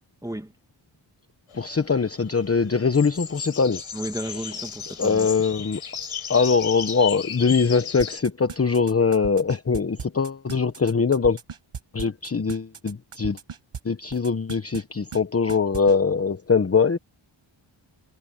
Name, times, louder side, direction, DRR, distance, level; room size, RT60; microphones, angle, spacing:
sound 1, 1.5-8.2, left 8 dB, 80° left, 6.4 m, -35 dB
voice 1, 1.5-3.8 4.2-4.5 5.0-5.8 6.3-11.4 11.9-13.4 13.8-17.0, left 5 dB, 30° left, 1.0 m, -22 dB
voice 2, 3.9-5.3, right 1 dB, 5° right, 2.2 m, -33 dB
sound 2, 8.0-13.8 14.1-14.8 15.1-15.2 15.5-15.9, right 6 dB, 80° right, 6.6 m, -36 dB
wide cardioid pair, 105°, 50 cm